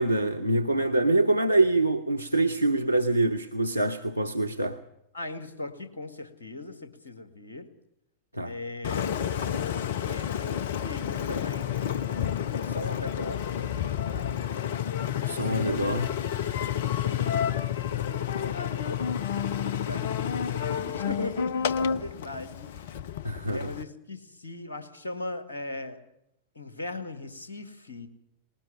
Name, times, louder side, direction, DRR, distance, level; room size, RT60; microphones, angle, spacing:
voice 1, 0.0-4.8 8.3-8.5 15.3-16.1 23.2-23.7, right 2 dB, 90° left, 0.9 m, -25 dB
voice 2, 5.1-7.7 8.4-9.2 9.9-11.8 12.6-13.6 16.9-22.9 23.5-26.0 26.6-28.1, left 2 dB, 75° left, 2.1 m, -39 dB
Engine, 8.8-23.8, left 9 dB, 55° left, 0.8 m, -30 dB
20.0 x 18.5 x 7.5 m
figure-of-eight pair, 90°, 0 cm